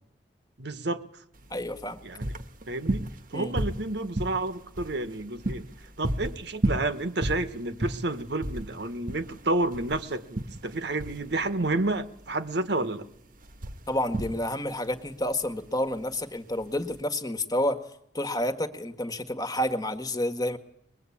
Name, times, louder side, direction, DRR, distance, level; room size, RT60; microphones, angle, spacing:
voice 1, 0.6-1.0 2.0-2.3 2.7-5.7 6.0-13.1, right 2 dB, 65° right, 1.4 m, -30 dB
sound 1, 1.3-17.0, right 1 dB, 50° right, 1.3 m, -34 dB
voice 2, 1.5-2.0 3.3-3.5 13.9-17.8 18.1-20.6, left 1 dB, 20° left, 1.6 m, -29 dB
23.0 x 21.5 x 8.5 m
head